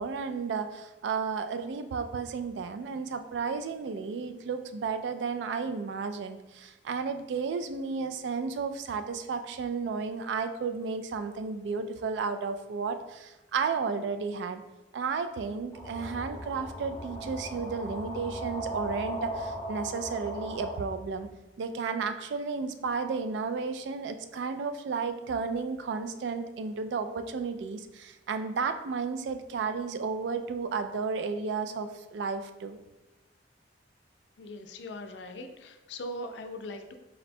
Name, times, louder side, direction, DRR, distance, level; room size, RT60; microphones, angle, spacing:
voice 1, 0.0-14.6 14.9-21.3 21.6-32.8, right 5 dB, 75° right, 9 dB, 0.3 m, -33 dB
sound 1, 15.7-20.7, right 1 dB, 15° left, 0.7 m, -38 dB
voice 2, 34.4-37.0, left 1 dB, 75° left, 6 dB, 0.4 m, -40 dB
3.9 x 2.2 x 4.1 m, 1.0 s
head